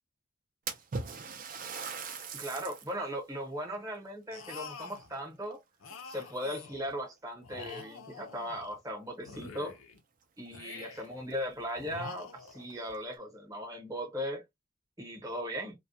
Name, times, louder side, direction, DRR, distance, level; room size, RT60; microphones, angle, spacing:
Splash splatter, 0.7-3.0 3.5-3.6 4.5-5.5 5.9-6.3 7.1-7.2 7.7-7.8 10.0-10.1 10.4-10.5 11.0-11.1 11.5-11.6 12.4-13.0, right 5 dB, 40° right, 0.4 m, -40 dB
voice 1, 2.3-5.6 6.0-9.8 10.4-14.4 15.0-15.7, equal, 15° right, 0.9 m, -38 dB
sound 1, 4.3-5.1 5.8-6.9 7.4-8.8 9.2-10.0 10.5-11.2 11.7-12.8, left 4 dB, 75° left, 0.5 m, -46 dB
2.2 x 2.1 x 2.6 m
head